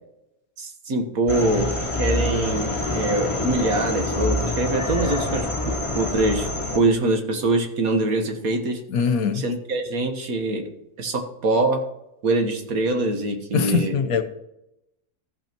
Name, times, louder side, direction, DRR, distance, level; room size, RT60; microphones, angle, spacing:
voice 1, 0.6-6.5 6.7-8.8 9.4-10.7 11.0-11.8 12.2-14.0, right 2 dB, 70° right, 4 dB, 1.8 m, -24 dB
sound 1, 1.3-6.8, left 2 dB, 20° left, 1.2 m, -26 dB
voice 2, 8.9-9.4 13.5-14.2, left 6 dB, 70° left, 9 dB, 1.3 m, -22 dB
14.5 x 5.6 x 4.5 m, 0.86 s
omnidirectional pair, 1.6 m